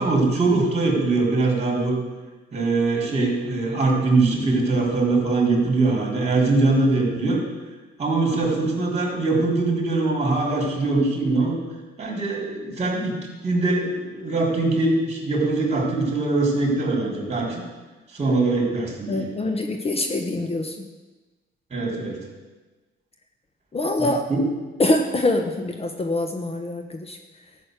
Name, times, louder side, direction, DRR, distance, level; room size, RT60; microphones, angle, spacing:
voice 1, 0.0-2.0 2.5-7.4 8.0-11.6 12.0-13.1 13.4-17.6 18.1-19.3 21.7-22.2 24.0-24.4, right 3 dB, 35° right, -1 dB, 4.1 m, -22 dB
voice 2, 19.1-20.9 23.7-24.3 24.8-27.2, left 2 dB, 30° left, 5 dB, 1.1 m, -24 dB
12.5 x 6.4 x 8.2 m, 1.3 s
cardioid pair, 90°, 20 cm